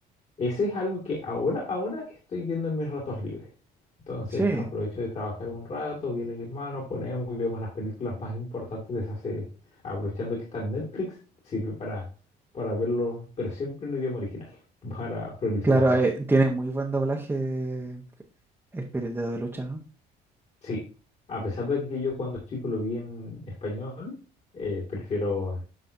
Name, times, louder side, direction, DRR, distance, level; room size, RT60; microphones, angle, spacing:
voice 1, 0.4-3.5 4.1-9.4 9.8-11.2 11.4-12.1 12.5-14.6 14.8-15.8 20.6-20.8 21.3-24.1 24.5-25.6, left 2 dB, 40° left, -3 dB, 2.2 m, -31 dB
voice 2, 4.3-4.6 15.6-18.0 18.7-19.8, right 2 dB, 10° right, 0 dB, 1.0 m, -25 dB
9.5 x 5.6 x 2.7 m, 0.36 s
cardioid pair, 110°, 17 cm